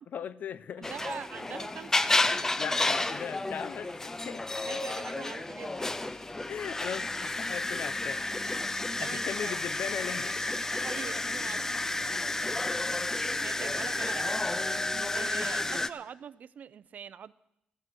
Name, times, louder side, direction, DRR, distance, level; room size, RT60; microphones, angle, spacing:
voice 1, 0.1-0.9 2.6-4.5 6.5-8.2 8.7-10.5 11.0-11.2, left 8 dB, 65° left, 18 dB, 0.6 m, -38 dB
sound 1, 0.8-15.9, left 2 dB, 15° left, 0.5 m, -31 dB
voice 2, 0.8-2.1 4.7-6.2 9.0-9.6 10.8-12.2 13.4-14.4 15.1-17.3, right 8 dB, 60° right, 18 dB, 0.5 m, -43 dB
14.5 x 9.7 x 7.7 m, 0.83 s
wide cardioid pair, 135°, 3 cm